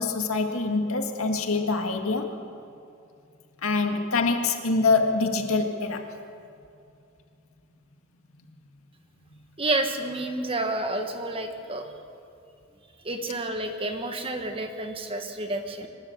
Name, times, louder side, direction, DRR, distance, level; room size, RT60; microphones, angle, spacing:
voice 1, 0.0-2.3 3.6-6.1, left 3 dB, 85° left, 4 dB, 2.0 m, -25 dB
voice 2, 9.6-11.8 13.0-15.9, right 2 dB, 25° right, 5 dB, 1.4 m, -29 dB
26.5 x 13.0 x 8.0 m, 2.5 s
head